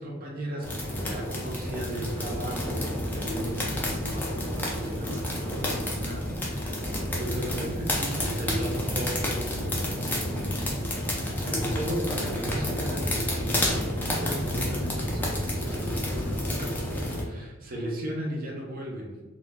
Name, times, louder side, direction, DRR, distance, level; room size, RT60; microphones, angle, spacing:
voice 1, 0.0-6.9 7.2-19.2, right 1 dB, 40° right, -1 dB, 0.5 m, -36 dB
sound 1, 0.6-17.2, left 1 dB, 10° left, 0.3 m, -30 dB
2.5 x 2.1 x 3.2 m, 1.2 s
head